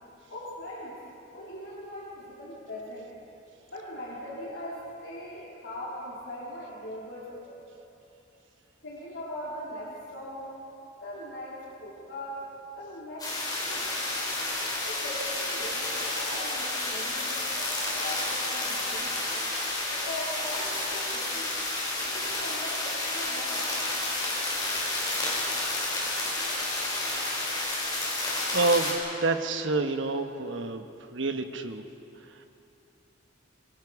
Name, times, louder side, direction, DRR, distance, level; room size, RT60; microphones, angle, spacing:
voice 1, 0.3-1.0 1.3-3.1 3.7-7.6 8.8-10.5 11.0-12.5 12.7-13.3 13.6-13.9 14.8-19.2 19.9-21.5 22.0-23.7, left 1 dB, 75° left, -6 dB, 3.6 m, -40 dB
sound 1, 13.2-28.9, left 2 dB, 20° left, 4.4 m, -30 dB
voice 2, 28.5-30.8 31.1-31.8, right 3 dB, 75° right, 6 dB, 1.1 m, -28 dB
24.5 x 22.0 x 4.8 m, 3.0 s
head